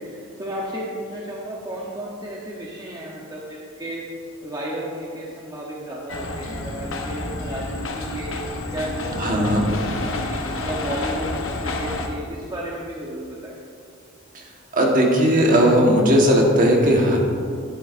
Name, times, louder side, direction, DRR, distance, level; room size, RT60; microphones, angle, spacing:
voice 1, 0.0-4.1 4.4-8.4 8.7-13.6, equal, 20° right, -4 dB, 0.8 m, -33 dB
sound 1, 6.1-12.1, left 2 dB, 70° left, 0.9 m, -29 dB
voice 2, 9.2-9.7 14.3-14.4 14.7-17.2, equal, 40° right, -1 dB, 1.4 m, -17 dB
10.5 x 10.0 x 2.6 m, 2.3 s
head